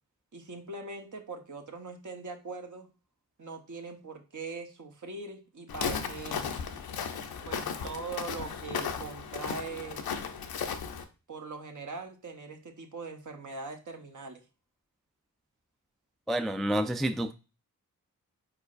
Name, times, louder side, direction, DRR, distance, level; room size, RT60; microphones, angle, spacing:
voice 1, 0.3-2.9 3.4-6.5 7.4-10.0 11.3-14.4, right 4 dB, 60° right, 1.1 m, -41 dB
Walk footsteps, 5.7-11.0, left 6 dB, 85° left, 0.7 m, -35 dB
voice 2, 16.3-17.3, right 1 dB, ahead, 0.3 m, -29 dB
4.6 x 4.3 x 2.5 m
cardioid pair, 45°, 35 cm